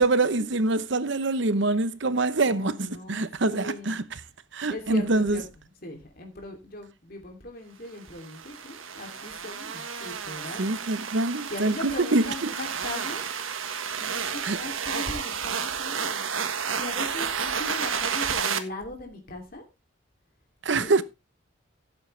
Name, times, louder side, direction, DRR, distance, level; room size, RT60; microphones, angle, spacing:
voice 1, 0.0-4.0 4.5-5.4 10.6-12.5 14.4-14.6 20.6-21.0, right 2 dB, 65° right, 0.9 m, -25 dB
voice 2, 2.3-4.0 4.7-5.4 5.8-10.7 11.5-13.2 14.0-16.3 16.6-19.6 20.8-20.9, left 1 dB, 45° left, 2.8 m, -39 dB
sound 1, 8.2-18.6, right 6 dB, 85° right, 1.5 m, -31 dB
16.0 x 8.0 x 3.3 m
head